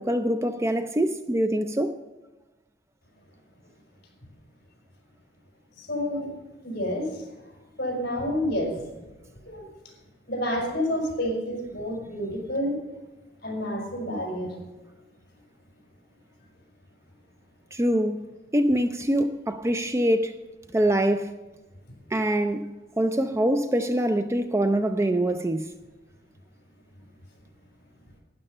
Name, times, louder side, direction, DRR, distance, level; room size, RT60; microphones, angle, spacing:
voice 1, 0.0-2.0 17.7-18.3 18.5-20.4 20.7-21.3 22.1-25.7, right 1 dB, 15° right, 0.4 m, -24 dB
voice 2, 5.8-6.3 6.6-7.3 7.8-8.7 9.4-9.7 10.3-12.8 13.4-14.5, left 1 dB, 55° left, 5.1 m, -29 dB
12.5 x 9.8 x 5.5 m
head